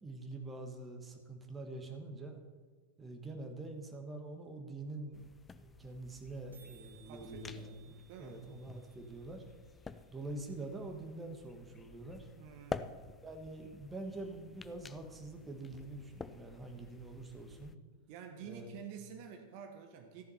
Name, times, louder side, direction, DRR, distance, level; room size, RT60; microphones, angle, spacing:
voice 1, 0.0-2.4 3.0-5.2 5.6-9.4 10.1-12.3 13.2-17.7 18.5-18.8, right 2 dB, 15° right, 3 dB, 1.6 m, -45 dB
sound 1, 4.4-4.5 4.7-4.8 5.0-5.2 5.5-5.6 5.7-6.0 6.2-6.3 6.5-10.5, right 8 dB, 80° right, 1.4 m, -65 dB
sound 2, 5.1-17.8, left 4 dB, 15° left, 0.4 m, -50 dB
voice 2, 7.1-7.8 8.1-8.4 12.4-12.9 18.1-20.2, right 7 dB, 50° right, 5 dB, 1.3 m, -49 dB
14.0 x 6.9 x 5.7 m, 1.4 s
figure-of-eight pair, 95°, 0 cm